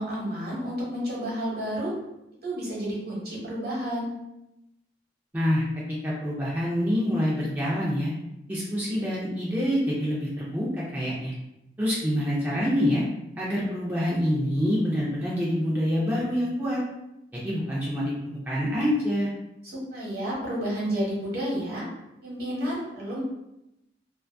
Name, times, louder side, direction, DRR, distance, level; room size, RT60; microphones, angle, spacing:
voice 1, 0.0-1.9 2.4-4.1 19.6-21.8 22.2-23.2, equal, 60° right, -5 dB, 1.0 m, -31 dB
voice 2, 5.3-8.1 8.5-11.3 11.8-13.0 13.4-16.8 17.3-19.3, equal, 10° right, -7 dB, 0.4 m, -26 dB
2.5 x 2.3 x 2.5 m, 0.89 s
head